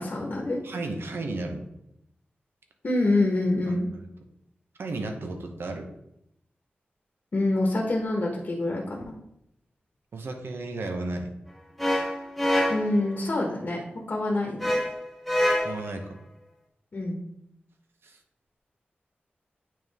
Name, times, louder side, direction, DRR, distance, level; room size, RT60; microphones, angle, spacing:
voice 1, 0.0-0.6 2.8-3.9 7.3-9.1 12.7-13.8 14.1-14.8 16.9-17.2, left 2 dB, 50° left, -2 dB, 1.2 m, -26 dB
voice 2, 0.6-1.7 3.7-3.8 4.8-5.9 10.1-11.3 15.6-16.2 18.0-18.2, right 2 dB, 80° right, 4 dB, 0.9 m, -33 dB
sound 1, 11.8-13.1 14.6-15.9, left 1 dB, ahead, 0.9 m, -25 dB
8.7 x 3.6 x 3.5 m, 0.78 s
wide cardioid pair, 100°, 4 cm